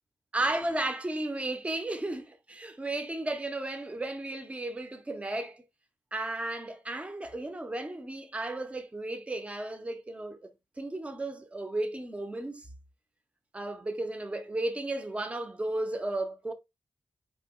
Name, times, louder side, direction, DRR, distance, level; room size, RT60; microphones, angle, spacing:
voice 1, 0.3-5.6 6.1-10.5 10.8-12.7 13.5-16.5, right 2 dB, 15° right, 0.6 m, -34 dB
4.3 x 2.9 x 3.5 m
wide cardioid pair, 155°, 8 cm